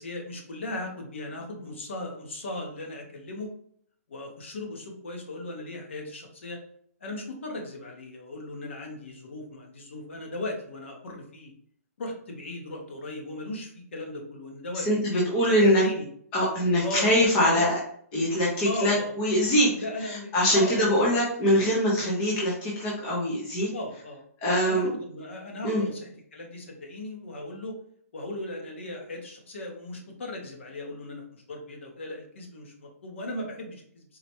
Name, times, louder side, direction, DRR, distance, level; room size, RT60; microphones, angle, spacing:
voice 1, 0.0-3.5 4.1-6.6 7.0-11.5 12.0-16.0 16.8-17.1 17.4-17.7 18.6-19.1 19.7-21.2 23.7-24.2 24.7-27.7 28.1-34.0, left 2 dB, 50° left, 1 dB, 0.9 m, -37 dB
voice 2, 14.7-15.8 16.3-17.8 18.1-19.7 20.0-23.7 24.4-24.9 25.6-25.8, equal, 10° left, -5 dB, 0.4 m, -23 dB
3.9 x 2.1 x 2.9 m, 0.63 s
hypercardioid pair, 175°, 8 cm